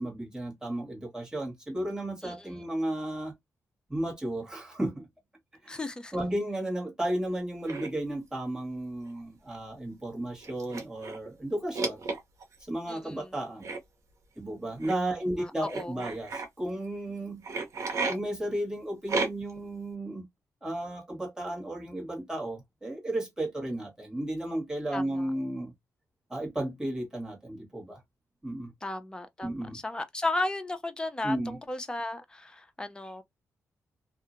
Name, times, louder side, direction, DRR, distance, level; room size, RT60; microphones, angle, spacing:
voice 1, 0.0-3.3 3.9-5.1 5.6-5.8 6.1-12.0 12.6-13.7 14.4-17.4 18.1-20.3 20.6-25.7 26.3-28.0 28.4-28.7 29.4-29.8 31.2-31.6, right 1 dB, 10° right, 1.5 m, -34 dB
voice 2, 2.2-2.6 5.7-6.2 12.9-13.3 15.4-16.0 24.9-25.3 28.8-33.2, left 2 dB, 15° left, 0.5 m, -35 dB
sound 1, 7.6-7.9 9.1-9.2 9.5-9.6 10.4-11.3 11.7-12.6 13.6-13.8 14.8-14.9 15.7-16.5 17.4-18.2 19.1-19.6, right 4 dB, 60° right, 1.1 m, -32 dB
2.7 x 2.5 x 2.5 m
cardioid pair, 110°, 6 cm